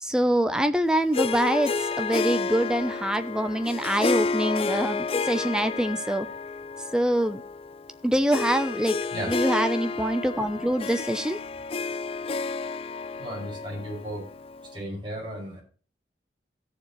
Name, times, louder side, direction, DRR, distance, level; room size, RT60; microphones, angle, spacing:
voice 1, 0.0-1.7 2.0-6.3 6.9-7.4 8.0-9.0 9.3-11.4, right 1 dB, 5° right, 9 dB, 0.8 m, -25 dB
Harp, 1.1-14.8, left 4 dB, 30° left, 0.4 m, -31 dB
voice 2, 13.2-14.3 14.7-15.6, equal, 25° right, -4 dB, 7.0 m, -34 dB
16.5 x 7.1 x 3.3 m, 0.39 s
head